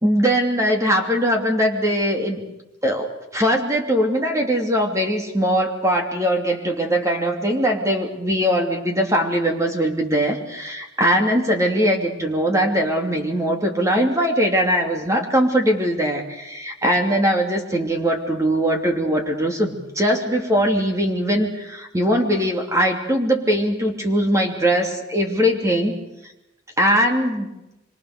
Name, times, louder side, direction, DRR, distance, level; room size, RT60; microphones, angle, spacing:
voice 1, 0.0-2.4 2.8-26.0 26.8-27.5, equal, 15° right, 2 dB, 3.0 m, -21 dB
25.5 x 24.0 x 6.8 m, 0.93 s
head